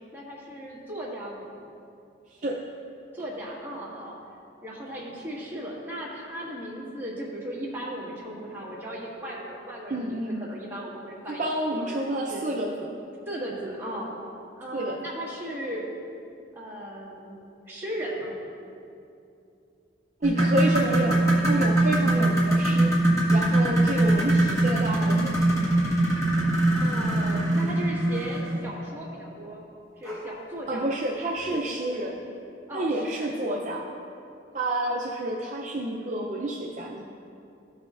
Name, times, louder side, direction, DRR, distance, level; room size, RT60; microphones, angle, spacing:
voice 1, 0.1-1.5 3.1-4.1 4.6-11.5 11.8-12.5 13.2-14.1 14.5-15.9 16.5-18.3 26.7-29.6 30.0-31.0 31.5-32.0 32.7-33.4, equal, 10° right, -7 dB, 1.7 m, -37 dB
voice 2, 9.9-10.5 11.4-13.0 14.7-15.0 20.2-22.9 23.3-25.4 30.7-32.2 32.7-33.8 34.5-37.0, right 1 dB, 40° right, -3 dB, 0.6 m, -29 dB
sound 1, 20.2-28.7 30.0-30.2 30.7-30.8 31.4-31.5, right 1 dB, 15° left, 1.4 m, -22 dB
14.5 x 6.2 x 2.5 m, 2.6 s
head